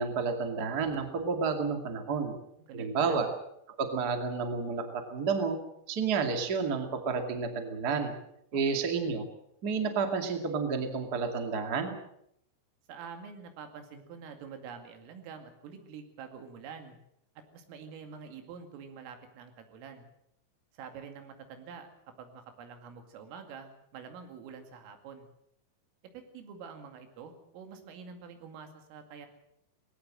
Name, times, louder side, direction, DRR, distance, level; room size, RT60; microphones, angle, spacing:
voice 1, 0.0-2.3 2.7-3.3 3.8-5.6 5.9-8.1 8.5-9.2 9.6-11.9, right 5 dB, 35° right, 5 dB, 1.5 m, -30 dB
voice 2, 2.7-3.2 8.5-8.9 12.9-17.0 17.5-20.1 20.7-21.9 22.2-25.3 26.3-29.3, right 6 dB, 90° right, 6 dB, 4.9 m, -46 dB
19.5 x 18.0 x 7.7 m, 0.77 s
omnidirectional pair, 5.7 m